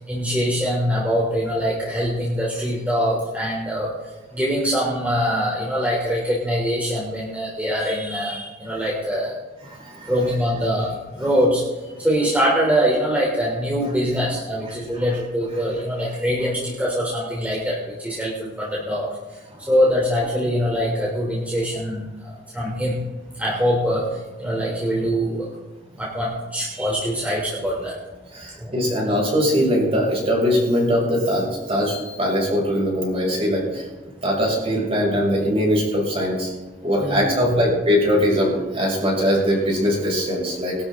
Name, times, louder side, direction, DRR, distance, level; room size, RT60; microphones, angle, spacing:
voice 1, 0.0-3.9 4.3-9.3 10.1-11.6 12.0-19.4 19.7-23.0 23.4-25.5 26.0-28.0 28.6-28.7 37.0-37.6, equal, 10° right, -5 dB, 3.4 m, -23 dB
voice 2, 9.6-10.1 14.7-15.0 28.3-33.9 34.2-36.5 36.8-40.8, equal, 30° right, -3 dB, 6.6 m, -21 dB
23.0 x 12.5 x 3.8 m, 1.1 s
head